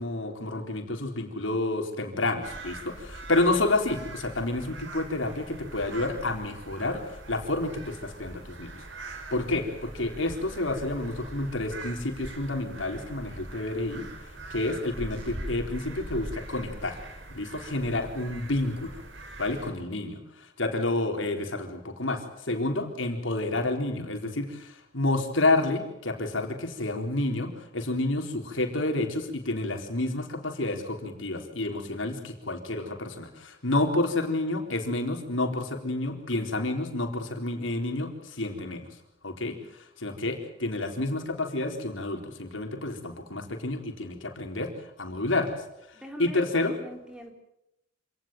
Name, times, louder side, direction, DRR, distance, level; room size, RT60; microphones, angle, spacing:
voice 1, 0.0-8.8 9.3-14.1 14.5-17.0 17.3-19.0 19.4-38.8 39.2-44.7 45.0-45.6 46.2-46.8, left 2 dB, 85° left, 4 dB, 4.3 m, -29 dB
sound 1, 2.4-19.7, right 2 dB, 75° right, 5.4 m, -42 dB
voice 2, 45.9-47.3, equal, 5° right, 4 dB, 4.0 m, -42 dB
27.0 x 18.5 x 9.3 m, 0.84 s
head